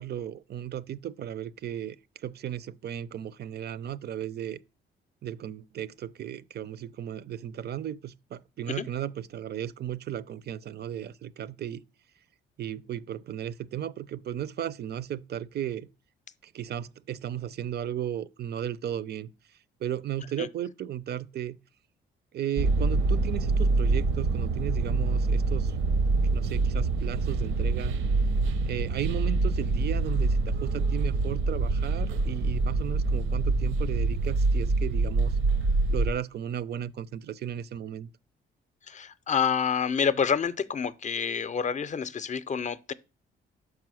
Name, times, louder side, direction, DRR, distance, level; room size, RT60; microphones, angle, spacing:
voice 1, 0.0-2.0 2.2-4.6 5.2-11.8 12.6-15.9 16.4-19.3 19.8-21.6 22.3-25.7 26.2-28.0 28.6-35.4 35.9-38.1, right 10 dB, 55° right, 0.5 m, -35 dB
sound 1, 22.6-36.1, right 3 dB, 80° right, 0.8 m, -25 dB
voice 2, 38.9-42.9, left 7 dB, 40° left, 0.6 m, -28 dB
5.3 x 4.8 x 6.3 m
cardioid pair, 90°, 20 cm